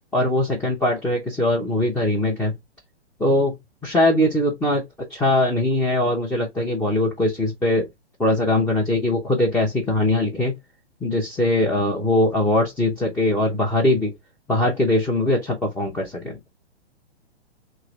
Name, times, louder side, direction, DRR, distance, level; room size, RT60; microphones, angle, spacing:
voice 1, 0.1-2.6 3.2-3.6 3.8-4.8 5.2-7.9 8.2-10.5 11.0-14.1 14.5-16.4, left 1 dB, 5° left, 0.5 m, -21 dB
3.1 x 2.8 x 4.0 m
hypercardioid pair, 130°, 34 cm